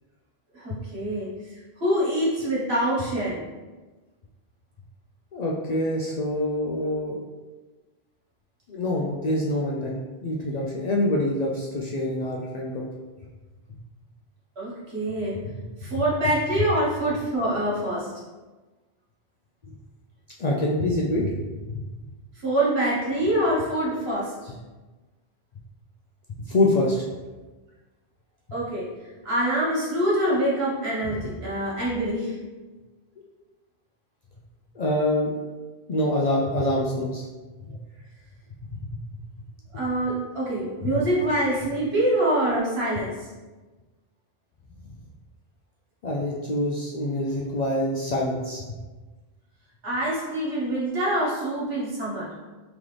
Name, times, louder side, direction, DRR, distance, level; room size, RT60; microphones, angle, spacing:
voice 1, 0.5-1.3 1.8-3.4 14.6-15.4 15.8-18.1 22.4-24.5 28.5-28.9 29.2-32.4 39.7-43.3 49.8-52.3, right 1 dB, 75° right, -6 dB, 1.5 m, -25 dB
voice 2, 5.3-7.2 8.7-9.9 10.2-12.8 15.6-15.7 20.4-21.3 21.7-21.9 26.5-27.0 31.0-31.1 34.8-35.3 35.9-37.2 37.7-37.8 46.0-48.8, left 1 dB, 55° left, -3 dB, 0.5 m, -25 dB
3.8 x 3.0 x 3.2 m, 1.3 s
omnidirectional pair, 1.1 m